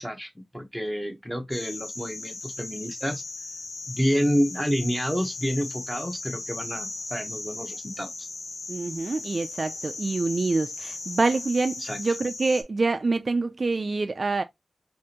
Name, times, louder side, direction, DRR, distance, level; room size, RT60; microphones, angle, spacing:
voice 1, 0.0-3.2 3.9-8.3 11.8-12.0, equal, ahead, 1.0 m, -29 dB
sound 1, 1.5-12.6, left 3 dB, 75° left, 0.9 m, -37 dB
voice 2, 8.7-14.4, right 3 dB, 55° right, 0.3 m, -26 dB
4.7 x 2.5 x 2.8 m
wide cardioid pair, 80°, 0 cm